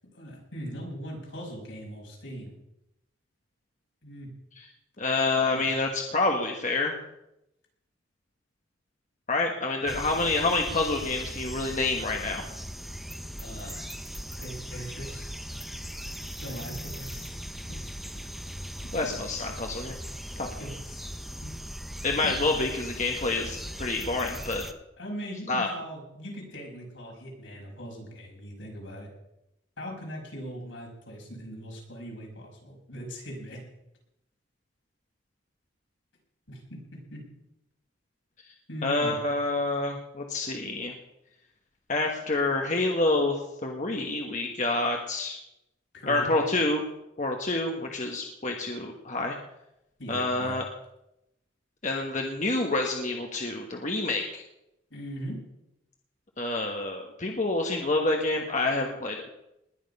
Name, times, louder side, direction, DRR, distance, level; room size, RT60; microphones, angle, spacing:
voice 1, 0.1-2.6 4.0-4.3 5.5-5.7 9.8-10.0 13.4-13.9 14.4-15.3 16.4-17.4 17.7-17.9 18.2-18.3 18.8-19.1 20.6-21.0 21.4-21.5 22.2-22.3 25.0-29.1 29.8-33.6 36.5-37.2 38.7-39.2 45.9-46.4 50.0-50.6 54.9-55.4, equal, 75° left, -1 dB, 5.8 m, -40 dB
voice 2, 5.0-7.0 9.3-12.4 18.9-20.0 20.4-20.5 22.0-24.6 25.5-25.7 38.8-40.9 41.9-45.4 46.1-46.8 47.2-49.4 50.1-50.6 51.8-54.4 56.4-59.2, left 2 dB, 40° left, 1 dB, 1.5 m, -28 dB
sound 1, 9.9-24.7, equal, ahead, 0.7 m, -39 dB
20.0 x 9.4 x 5.5 m, 0.85 s
head